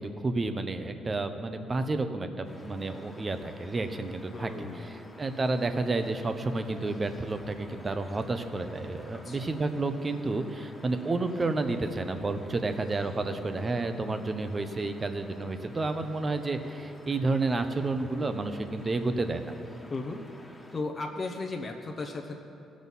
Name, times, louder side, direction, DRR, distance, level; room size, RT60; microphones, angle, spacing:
voice 1, 0.0-19.6, right 3 dB, 30° right, 8 dB, 0.8 m, -31 dB
sound 1, 2.4-20.8, left 1 dB, 10° left, 1.5 m, -51 dB
voice 2, 4.3-5.0 9.1-9.5 19.9-20.2 20.7-22.4, left 3 dB, 30° left, 1 dB, 0.9 m, -36 dB
16.5 x 6.3 x 5.5 m, 2.7 s
cardioid pair, 90°, 0 cm